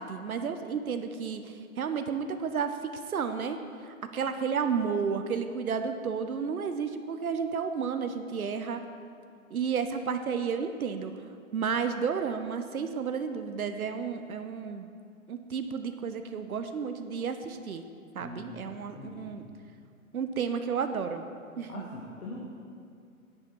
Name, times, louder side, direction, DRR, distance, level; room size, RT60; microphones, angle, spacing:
voice 1, 0.0-3.6 3.8-8.8 9.5-11.1 11.5-14.9 15.3-17.8 18.1-19.4 20.1-21.2 21.6-21.9, right 6 dB, 80° right, 8 dB, 0.8 m, -32 dB
voice 2, 18.2-19.3 21.7-22.4, left 2 dB, 90° left, -4 dB, 1.8 m, -43 dB
10.0 x 8.7 x 4.6 m, 2.4 s
hypercardioid pair, 130°, 43 cm